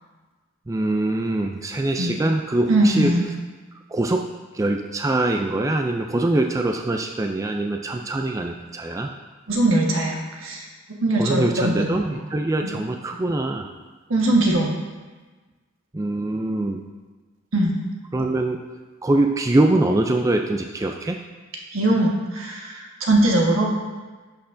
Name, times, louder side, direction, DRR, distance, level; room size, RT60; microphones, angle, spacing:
voice 1, 0.7-3.1 3.9-4.3 4.5-9.1 11.1-13.7 15.9-16.8 18.1-18.6 19.0-21.2, right 2 dB, 15° right, 3 dB, 0.3 m, -23 dB
voice 2, 2.7-3.3 9.5-10.7 11.0-12.1 12.6-12.7 14.1-14.7 17.5-17.7 21.7-23.7, right 1 dB, 80° right, -1 dB, 1.4 m, -21 dB
11.0 x 6.4 x 2.6 m, 1.3 s
head